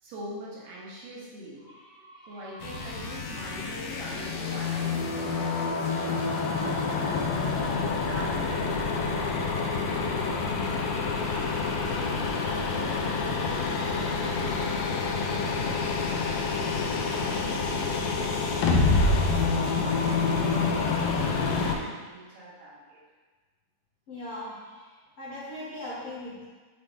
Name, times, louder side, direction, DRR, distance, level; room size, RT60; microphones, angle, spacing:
voice 1, 0.0-11.1 11.8-23.0, right 1 dB, 85° right, -6 dB, 3.1 m, -43 dB
voice 2, 1.6-2.5 7.2-7.8 24.1-26.5, left 1 dB, 60° left, -9 dB, 1.5 m, -42 dB
sound 1, 2.6-21.7, left 4 dB, 85° left, 1.5 m, -27 dB
7.4 x 2.7 x 4.7 m, 1.4 s
omnidirectional pair, 3.8 m